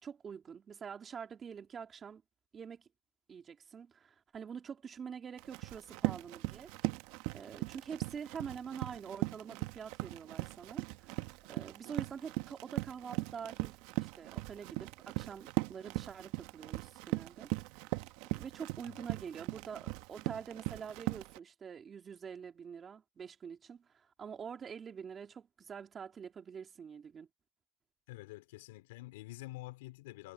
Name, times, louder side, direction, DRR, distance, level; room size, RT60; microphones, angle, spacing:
voice 1, 0.0-2.2 2.5-2.9 3.3-6.7 7.3-17.5 18.3-27.3, right 7 dB, 25° right, 3.2 m, -46 dB
Run, 5.4-21.4, right 20 dB, 65° right, 1.2 m, -39 dB
voice 2, 28.1-30.3, left 19 dB, 80° left, 3.3 m, -48 dB
supercardioid pair, 120°, 0 cm